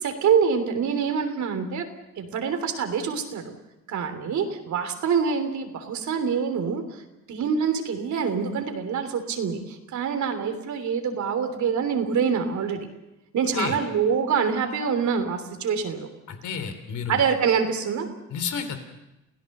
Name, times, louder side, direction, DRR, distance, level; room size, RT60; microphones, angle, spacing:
voice 1, 0.0-1.8 2.2-3.5 3.9-7.0 7.3-12.9 13.3-16.1 17.1-18.1, right 6 dB, 70° right, 7 dB, 3.3 m, -25 dB
voice 2, 16.3-17.2 18.3-18.8, left 6 dB, 75° left, 8 dB, 3.5 m, -30 dB
29.5 x 16.5 x 6.7 m, 0.97 s
cardioid pair, 90°, 30 cm